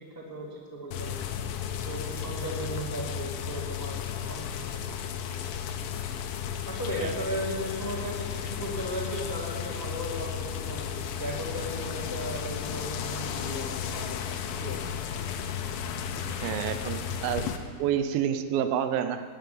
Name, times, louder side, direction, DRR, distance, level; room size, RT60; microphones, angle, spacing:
voice 1, 0.1-1.1 1.8-4.0 4.3-4.8 6.6-14.3 14.6-14.8, equal, 10° left, -2 dB, 1.3 m, -36 dB
sound 1, 0.9-17.6, left 8 dB, 80° left, 2.7 m, -34 dB
voice 2, 16.4-17.5 17.8-19.2, right 9 dB, 80° right, 9 dB, 2.5 m, -28 dB
18.5 x 6.9 x 9.4 m, 2.1 s
omnidirectional pair, 4.1 m